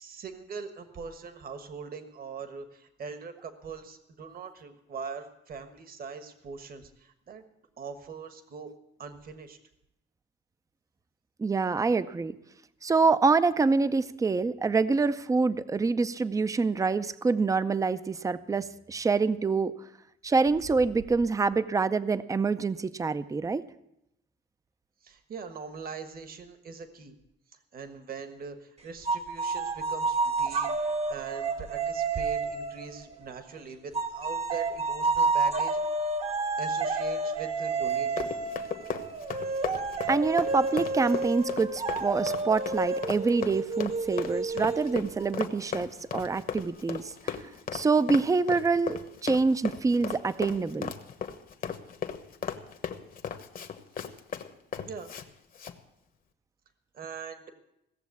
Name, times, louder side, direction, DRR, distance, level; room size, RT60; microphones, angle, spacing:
voice 1, 0.0-7.5 7.8-8.7 9.0-9.6 25.0-27.1 27.7-35.8 36.6-38.3 54.8-55.1 56.9-57.5, right 5 dB, 50° right, 8 dB, 1.5 m, -42 dB
voice 2, 11.4-12.4 12.8-19.7 20.2-23.7 40.1-47.4 47.7-50.9, right 4 dB, 15° right, 14 dB, 0.5 m, -26 dB
sound 1, 29.1-33.4 33.9-45.3, right 3 dB, 35° right, 0.9 m, -30 dB
Run, 37.9-55.3 55.5-55.8, left 7 dB, 50° left, 1.2 m, -36 dB
16.5 x 7.1 x 8.4 m, 0.82 s
cardioid pair, 115°, 19 cm